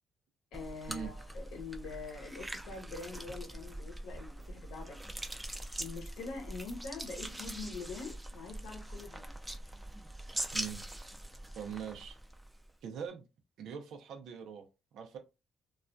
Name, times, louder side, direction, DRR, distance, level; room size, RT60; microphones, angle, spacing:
voice 1, 0.5-5.0 5.8-9.3, left 4 dB, 85° left, 0.7 m, -44 dB
sound 1, 0.5-12.7, right 1 dB, 10° right, 0.3 m, -43 dB
voice 2, 10.5-10.8 11.6-12.2 12.8-13.2 13.6-14.7 14.9-15.2, right 7 dB, 80° right, 0.6 m, -42 dB
2.3 x 2.2 x 2.5 m
cardioid pair, 90°, 0 cm